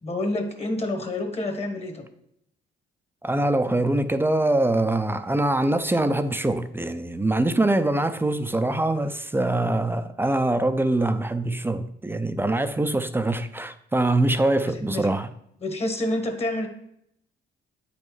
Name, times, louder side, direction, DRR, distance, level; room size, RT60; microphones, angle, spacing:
voice 1, 0.0-2.1 14.7-15.1 15.6-16.7, left 1 dB, 30° left, 1.2 m, -28 dB
voice 2, 3.2-15.3, right 2 dB, 10° right, 0.4 m, -23 dB
8.4 x 5.4 x 3.1 m
cardioid pair, 90°, 20 cm